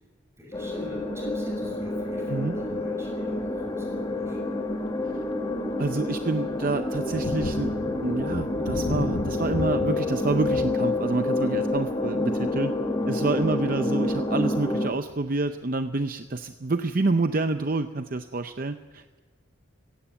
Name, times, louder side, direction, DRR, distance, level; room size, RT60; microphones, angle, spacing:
voice 1, 0.4-4.6 13.0-13.5, equal, 15° right, 0 dB, 6.1 m, -43 dB
sound 1, 0.5-14.9, left 2 dB, 20° left, 1.7 m, -28 dB
Thunder, 3.4-3.7 4.3-4.4 4.9-15.4, left 2 dB, 75° left, 1.0 m, -37 dB
voice 2, 5.8-7.7 8.0-12.7 13.0-19.2, right 3 dB, 45° right, 8 dB, 0.6 m, -28 dB
16.5 x 16.5 x 9.8 m, 1.3 s
head